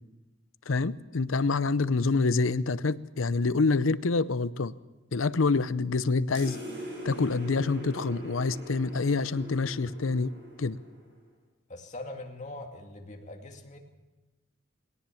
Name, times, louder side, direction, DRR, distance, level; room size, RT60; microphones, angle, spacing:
voice 1, 0.7-4.7 5.1-6.6 7.0-10.3 10.6-10.8, left 3 dB, 75° left, 16 dB, 0.7 m, -26 dB
sound 1, 6.3-11.2, right 1 dB, 55° right, 7.9 m, -42 dB
voice 2, 11.7-13.8, left 2 dB, 40° left, 2 dB, 2.3 m, -42 dB
20.5 x 18.0 x 7.1 m, 1.1 s
head